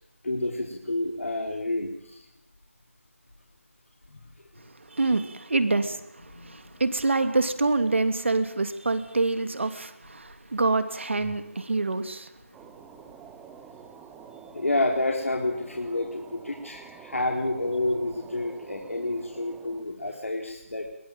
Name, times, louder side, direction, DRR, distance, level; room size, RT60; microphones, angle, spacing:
voice 1, 0.2-2.2 4.1-4.2 6.3-6.8 14.5-20.9, left 2 dB, 70° left, 1 dB, 4.0 m, -29 dB
voice 2, 4.5-12.3, right 3 dB, 60° right, 9 dB, 2.9 m, -26 dB
sound 1, 12.5-19.8, right 7 dB, 5° right, 0.9 m, -48 dB
23.0 x 19.5 x 9.1 m, 0.79 s
figure-of-eight pair, 165°, 8 cm